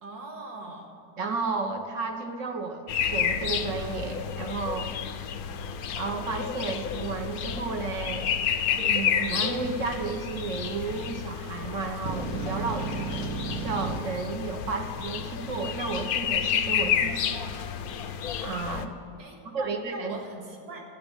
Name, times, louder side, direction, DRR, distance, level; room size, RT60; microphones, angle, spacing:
voice 1, 0.0-0.9 12.8-13.1 19.2-20.8, right 2 dB, 80° right, 1 dB, 2.5 m, -41 dB
voice 2, 1.2-5.2 6.0-8.3 8.8-17.5 18.4-18.9 19.5-20.1, right 4 dB, 45° right, 5 dB, 1.4 m, -33 dB
sound 1, 2.9-18.8, left 8 dB, 65° left, 1.0 m, -30 dB
sound 2, 12.0-14.0, right 4 dB, 65° right, 1.6 m, -33 dB
13.0 x 8.5 x 9.0 m, 2.6 s
omnidirectional pair, 2.0 m